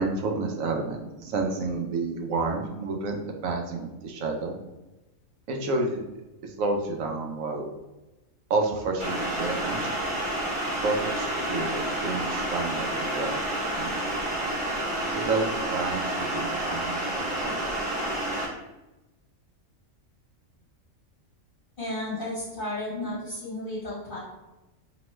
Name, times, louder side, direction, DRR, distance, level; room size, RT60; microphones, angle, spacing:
voice 1, 0.0-4.6 5.5-6.0 6.4-7.7 8.5-10.0 10.8-14.0 15.0-17.8, right 3 dB, 80° right, 2 dB, 1.0 m, -30 dB
sound 1, 9.0-18.5, right 1 dB, 40° right, 0.4 m, -29 dB
voice 2, 21.8-24.2, left 1 dB, 40° left, -11 dB, 1.2 m, -33 dB
2.8 x 2.2 x 3.0 m, 1.0 s
omnidirectional pair, 1.4 m